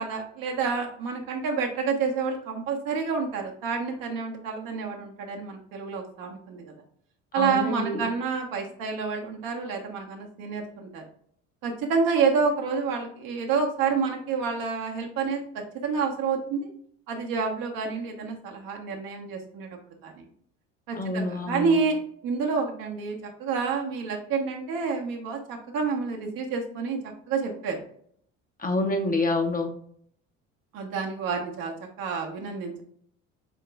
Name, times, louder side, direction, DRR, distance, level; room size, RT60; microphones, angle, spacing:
voice 1, 0.0-6.7 7.3-11.0 11.6-16.7 17.1-20.3 20.9-27.8 30.7-32.8, right 5 dB, 60° right, 2 dB, 1.2 m, -29 dB
voice 2, 7.3-8.1 20.9-21.8 28.6-29.7, left 2 dB, 20° left, 3 dB, 1.0 m, -27 dB
7.5 x 2.9 x 2.4 m, 0.63 s
hypercardioid pair, 60°, 39 cm